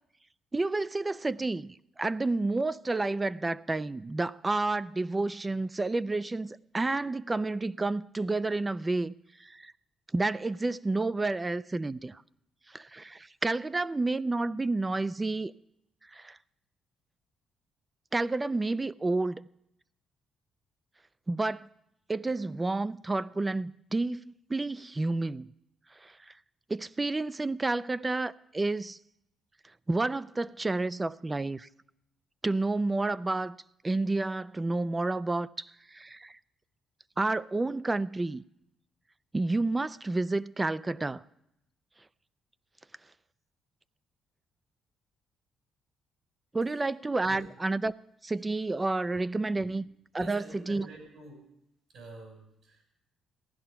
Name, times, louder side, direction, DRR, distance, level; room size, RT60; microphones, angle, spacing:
voice 1, 0.5-9.1 9.4-9.7 10.1-12.2 12.7-15.5 16.1-16.4 18.1-19.5 21.3-21.7 22.1-25.5 26.0-26.3 26.7-29.0 29.9-31.7 32.4-33.6 33.8-36.4 37.2-38.4 39.3-41.2 46.5-47.9 48.2-49.8 50.1-50.9, right 2 dB, 20° right, 0.4 m, -30 dB
voice 2, 50.2-51.5 51.9-52.8, right 2 dB, 70° right, 7.3 m, -47 dB
15.5 x 11.0 x 5.7 m
cardioid pair, 90°, 0 cm